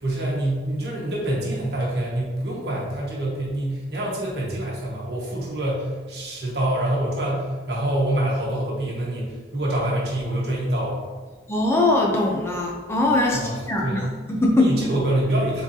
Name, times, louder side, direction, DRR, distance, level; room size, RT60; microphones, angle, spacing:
voice 1, 0.0-11.0 13.3-13.5 13.8-14.0 14.5-15.6, right 1 dB, 60° right, -4 dB, 1.4 m, -26 dB
voice 2, 11.5-14.8, left 2 dB, 15° left, -1 dB, 0.4 m, -21 dB
4.7 x 3.9 x 2.8 m, 1.4 s
head